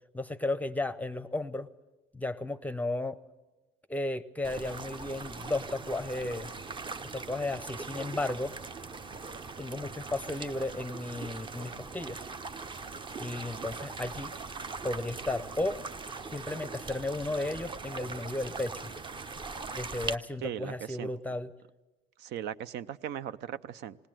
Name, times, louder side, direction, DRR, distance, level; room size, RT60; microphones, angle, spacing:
voice 1, 0.1-1.7 2.1-3.2 3.9-6.5 7.1-8.5 9.6-12.3 13.2-14.3 14.8-15.8 16.3-18.9 19.7-21.5, left 2 dB, 10° left, 13 dB, 0.6 m, -34 dB
sound 1, 4.4-20.2, right 4 dB, 30° right, 0.7 m, -41 dB
voice 2, 20.4-21.1 22.2-24.0, right 10 dB, 80° right, 14 dB, 0.6 m, -38 dB
20.0 x 18.5 x 7.6 m, 1.1 s
cardioid pair, 110°, 17 cm